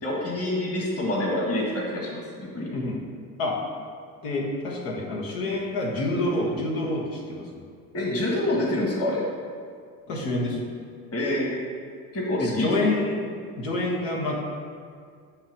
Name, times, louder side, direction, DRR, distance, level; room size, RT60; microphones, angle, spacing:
voice 1, 0.0-2.7 7.9-9.2 11.1-11.6 12.1-12.7, left 1 dB, 30° left, -3 dB, 1.6 m, -27 dB
voice 2, 4.2-7.5 10.1-10.7 12.4-13.3 13.6-14.5, left 2 dB, 80° left, -2 dB, 1.4 m, -27 dB
7.9 x 3.0 x 5.1 m, 2.2 s
hypercardioid pair, 65°, 47 cm